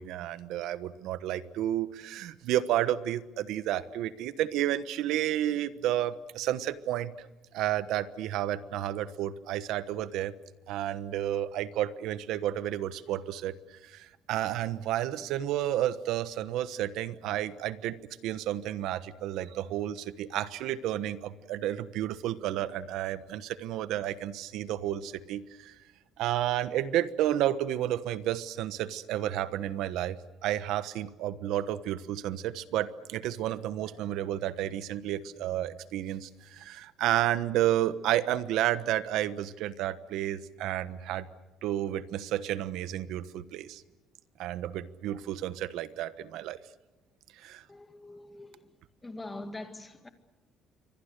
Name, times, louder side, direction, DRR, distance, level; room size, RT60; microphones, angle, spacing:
voice 1, 0.0-7.3 7.5-10.3 10.7-18.0 18.2-25.7 26.2-41.3 41.6-43.8 44.4-46.6 47.4-47.6, right 12 dB, 75° right, 1.2 m, -31 dB
voice 2, 47.7-48.7 49.0-50.1, left 2 dB, 15° left, 2.2 m, -43 dB
28.5 x 24.5 x 6.8 m
cardioid pair, 135°, 0 cm